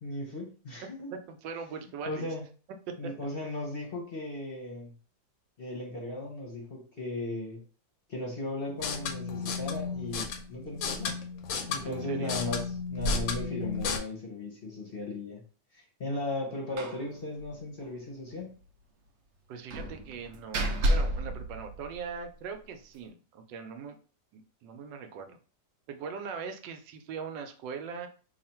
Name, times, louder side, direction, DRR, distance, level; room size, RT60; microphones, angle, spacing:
voice 1, 0.0-1.1 2.1-2.4 3.0-4.9 5.6-7.6 8.1-11.1 11.7-15.4 15.7-18.5, left 2 dB, 45° left, -1 dB, 0.8 m, -37 dB
voice 2, 1.1-2.3 2.9-3.1 11.8-12.3 19.5-24.0 24.3-25.4 25.9-28.1, right 6 dB, 90° right, 6 dB, 1.3 m, -40 dB
sound 1, 8.7-14.0, left 4 dB, 85° left, 1.3 m, -33 dB
Slam, 16.8-17.1 17.4-17.5 17.8-17.9 19.7-22.3, right 1 dB, 70° right, 0.6 m, -30 dB
3.2 x 2.4 x 4.3 m, 0.38 s
omnidirectional pair, 1.9 m